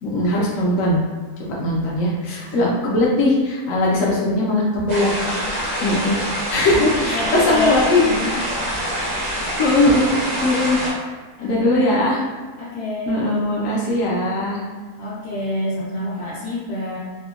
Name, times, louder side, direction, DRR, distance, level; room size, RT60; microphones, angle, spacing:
voice 1, 0.0-1.0 1.4-5.1 5.8-6.2 6.5-8.3 9.0-9.1 9.6-10.1 10.4-10.8 11.4-12.2 13.1-14.6, left 1 dB, 70° left, -5 dB, 0.9 m, -20 dB
sound 1, 4.9-10.9, equal, 90° right, 1.4 m, -25 dB
voice 2, 6.7-8.4 11.4-11.9 12.6-13.2 15.0-17.0, left 2 dB, 90° left, -9 dB, 1.2 m, -26 dB
3.6 x 2.0 x 2.3 m, 1.5 s
omnidirectional pair, 1.6 m